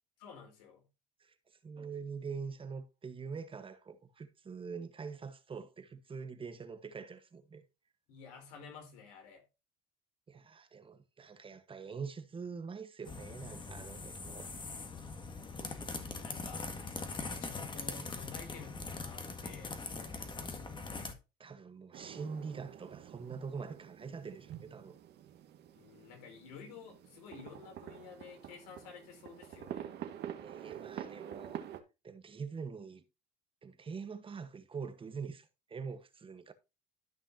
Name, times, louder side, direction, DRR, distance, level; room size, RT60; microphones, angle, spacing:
voice 1, 0.2-0.9 8.1-9.4 15.3-16.7 17.4-20.8 25.7-29.9, left 6 dB, 85° left, 3.8 m, -52 dB
voice 2, 1.2-7.6 10.3-14.5 21.4-25.0 30.4-31.6 32.0-33.0 33.6-36.5, right 5 dB, 25° right, 1.2 m, -44 dB
sound 1, 13.0-21.1, left 3 dB, 25° left, 1.7 m, -42 dB
sound 2, 21.9-31.8, right 10 dB, 60° right, 1.6 m, -47 dB
13.5 x 5.6 x 2.7 m
supercardioid pair, 95°, 20 cm